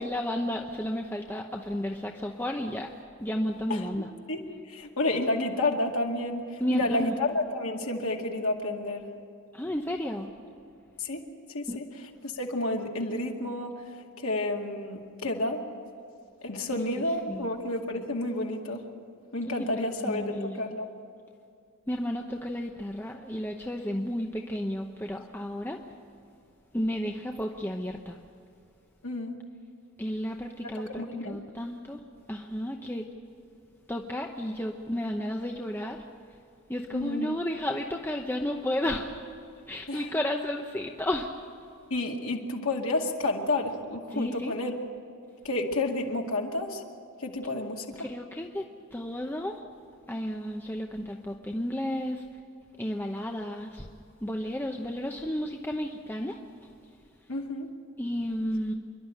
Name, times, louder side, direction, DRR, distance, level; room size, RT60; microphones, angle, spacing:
voice 1, 0.0-2.9 3.2-4.1 6.6-7.2 9.5-10.3 11.7-11.8 16.7-16.8 17.3-17.5 19.6-19.7 20.1-20.6 21.9-25.8 26.7-28.2 30.0-32.0 32.3-33.1 33.9-36.1 36.7-39.1 39.7-41.3 44.1-44.5 48.0-49.6 50.1-52.2 52.8-53.9 54.2-56.4 58.0-58.7, left 1 dB, 10° left, 2 dB, 0.8 m, -32 dB
voice 2, 4.7-9.1 11.0-11.9 12.2-13.8 14.2-15.6 16.4-18.8 19.3-20.9 29.0-29.4 30.7-31.4 36.9-37.3 39.9-40.0 41.9-44.8 45.4-46.8 47.2-48.1 57.3-57.7, left 2 dB, 80° left, 1 dB, 2.2 m, -30 dB
27.5 x 11.5 x 9.1 m, 2.4 s
head